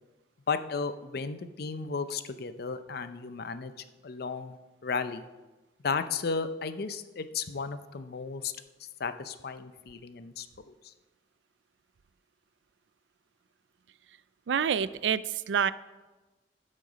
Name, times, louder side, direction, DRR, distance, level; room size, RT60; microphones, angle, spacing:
voice 1, 0.5-3.7 4.0-4.6 4.8-5.2 5.8-8.5 9.0-10.7, left 5 dB, 60° left, 11 dB, 0.6 m, -34 dB
voice 2, 14.5-15.7, right 7 dB, 85° right, 17 dB, 0.4 m, -27 dB
12.0 x 6.5 x 5.0 m, 1.2 s
head